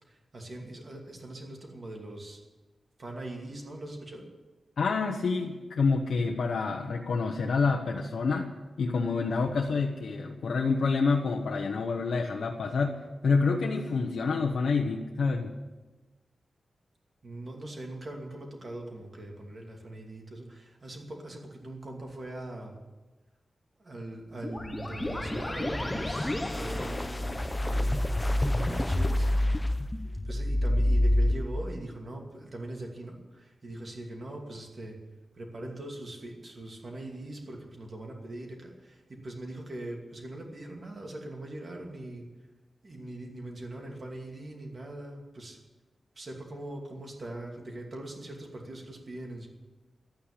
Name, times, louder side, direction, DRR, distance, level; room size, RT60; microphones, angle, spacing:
voice 1, 0.0-2.4 3.0-4.3 17.2-22.8 23.8-29.3 30.2-35.0 35.3-42.3 42.8-45.6 46.2-49.5, right 1 dB, 40° right, 1 dB, 2.6 m, -41 dB
voice 2, 4.8-13.0 13.2-15.5, left 4 dB, 75° left, 1 dB, 1.1 m, -28 dB
sound 1, 24.4-31.3, left 1 dB, 10° left, 0.8 m, -28 dB
13.0 x 8.9 x 9.8 m, 1.2 s
wide cardioid pair, 170°, 0 cm